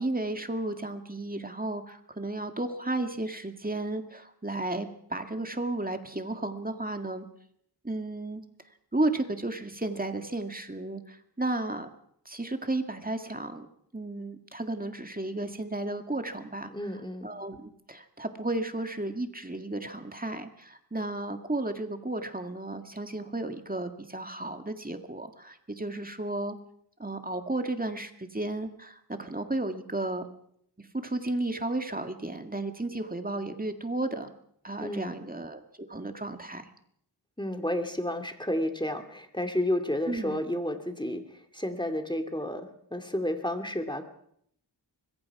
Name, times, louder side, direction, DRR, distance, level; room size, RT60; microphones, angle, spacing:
voice 1, 0.0-7.3 7.8-8.4 8.9-11.9 12.3-13.7 13.9-16.7 17.2-26.6 27.0-30.3 30.9-34.3 34.6-36.7 40.1-40.4, right 2 dB, 20° right, 6 dB, 1.9 m, -33 dB
voice 2, 16.7-17.3 34.8-35.2 37.4-44.1, left 1 dB, 10° left, 7 dB, 2.4 m, -31 dB
25.0 x 21.5 x 4.8 m, 0.70 s
wide cardioid pair, 65°, 43 cm